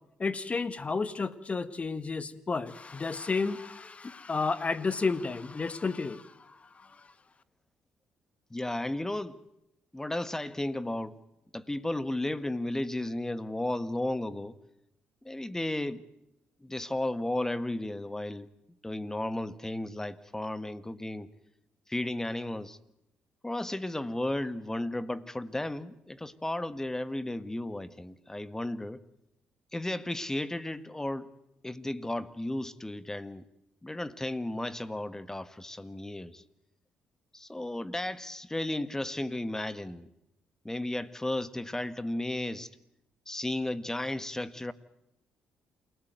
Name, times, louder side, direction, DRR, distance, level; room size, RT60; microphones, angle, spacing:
voice 1, 0.2-7.1, left 4 dB, 35° left, 1.7 m, -32 dB
voice 2, 8.5-9.4 9.9-11.2 11.5-14.6 15.2-16.0 16.6-18.5 18.8-21.3 21.9-22.8 23.4-29.0 29.7-31.3 31.6-33.4 33.8-36.4 37.3-40.1 40.6-42.7 43.3-44.7, left 1 dB, 10° left, 1.6 m, -34 dB
28.5 x 19.0 x 9.3 m
supercardioid pair, 70°, 4 cm